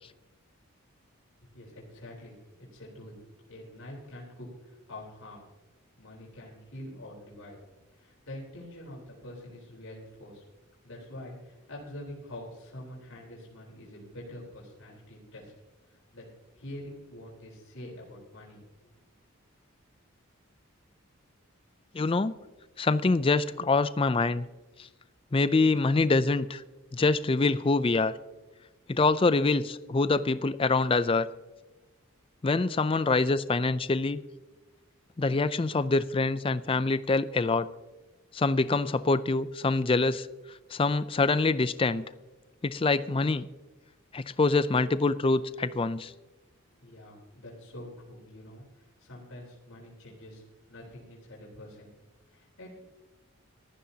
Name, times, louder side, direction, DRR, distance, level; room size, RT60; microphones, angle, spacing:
voice 1, 1.5-3.2 3.5-5.5 6.0-7.6 7.9-10.4 10.8-15.5 15.9-16.2 16.5-18.6 46.8-50.4 50.7-51.9 52.3-52.8, left 1 dB, 80° left, -4 dB, 4.0 m, -45 dB
voice 2, 21.9-22.3 22.8-24.5 25.3-26.6 26.9-28.1 28.9-31.3 32.4-34.2 35.2-37.7 38.3-40.3 40.7-42.0 42.6-43.5 44.1-46.1, left 3 dB, 25° left, 14 dB, 0.4 m, -25 dB
18.5 x 14.0 x 2.8 m, 1.1 s
head